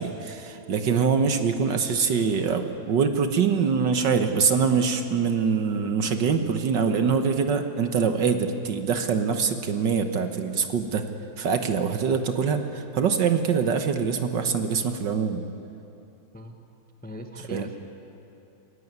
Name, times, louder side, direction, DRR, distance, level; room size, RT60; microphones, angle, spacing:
voice 1, 0.0-11.0 11.4-15.4 17.5-17.6, right 6 dB, 60° right, 7 dB, 1.7 m, -24 dB
voice 2, 17.0-17.8, equal, 5° left, 5 dB, 0.9 m, -39 dB
26.5 x 16.5 x 9.5 m, 3.0 s
omnidirectional pair, 2.4 m